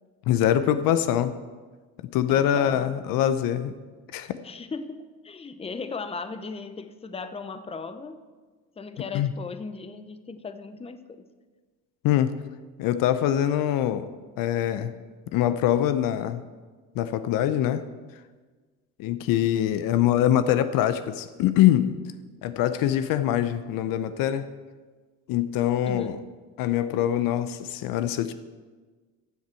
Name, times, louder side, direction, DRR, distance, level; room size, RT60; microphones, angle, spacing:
voice 1, 0.3-1.3 2.1-3.7 4.1-4.3 9.1-9.3 12.0-12.3 12.8-14.1 14.4-14.9 15.3-16.4 17.0-17.9 19.0-21.9 22.4-24.5 25.3-26.2 26.6-28.3, left 11 dB, 70° left, 12 dB, 0.7 m, -23 dB
voice 2, 2.3-2.9 4.4-8.2 8.8-11.3 25.9-26.2, left 4 dB, 15° left, 10 dB, 0.7 m, -37 dB
14.0 x 7.4 x 4.5 m, 1.4 s
supercardioid pair, 85°, 36 cm